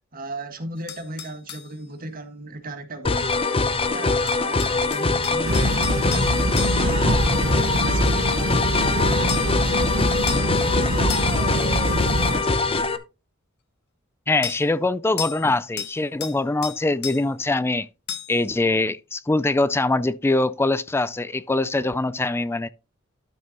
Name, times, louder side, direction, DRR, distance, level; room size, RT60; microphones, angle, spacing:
voice 1, 0.1-3.4 3.8-10.0 10.3-12.7, right 1 dB, 45° right, 1.7 m, -36 dB
sound 1, 0.9-1.7 4.3-7.0 9.3-9.6 10.3-10.5 11.1-11.5 14.4-14.6 15.2-15.5 15.8-16.4 16.6-17.2 18.1-18.4, left 8 dB, 55° left, 1.0 m, -34 dB
sound 2, 3.0-13.0, left 3 dB, 30° left, 0.8 m, -23 dB
sound 3, 5.4-12.5, right 1 dB, 85° right, 1.3 m, -24 dB
voice 2, 14.3-17.9 18.3-22.7, left 2 dB, 10° left, 0.3 m, -23 dB
12.0 x 6.7 x 2.9 m
head